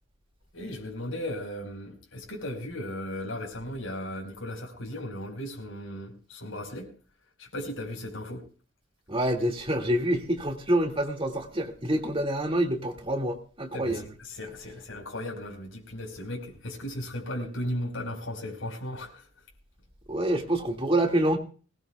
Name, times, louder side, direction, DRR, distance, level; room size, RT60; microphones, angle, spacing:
voice 1, 0.5-6.9 7.4-8.4 13.7-14.0 14.3-19.2, left 1 dB, 75° left, 4.8 m, -36 dB
voice 2, 9.1-14.0 20.1-21.4, right 1 dB, 25° right, 2.3 m, -27 dB
21.0 x 20.0 x 2.4 m
head